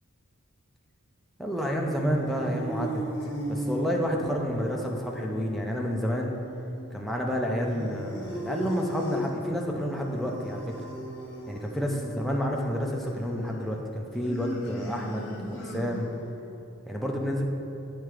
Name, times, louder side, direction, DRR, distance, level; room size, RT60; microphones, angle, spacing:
voice 1, 1.4-3.0 3.5-6.3 6.9-10.8 11.5-16.1 16.9-17.4, equal, ahead, -1 dB, 0.6 m, -29 dB
sound 1, 1.9-16.4, equal, 55° left, 1.1 m, -38 dB
7.9 x 4.6 x 4.9 m, 2.8 s
head